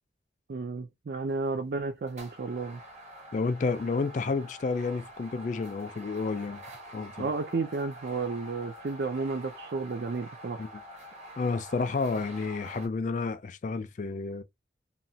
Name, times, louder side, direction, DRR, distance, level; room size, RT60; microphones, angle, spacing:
voice 1, 0.5-2.8 7.2-10.6, right 4 dB, 60° right, 0.4 m, -32 dB
sound 1, 1.3-1.6 2.1-12.9, equal, 40° right, 1.0 m, -46 dB
voice 2, 3.3-6.6 6.9-7.3 10.6-10.7 11.4-14.4, left 4 dB, 45° left, 0.3 m, -30 dB
3.0 x 2.2 x 2.7 m
head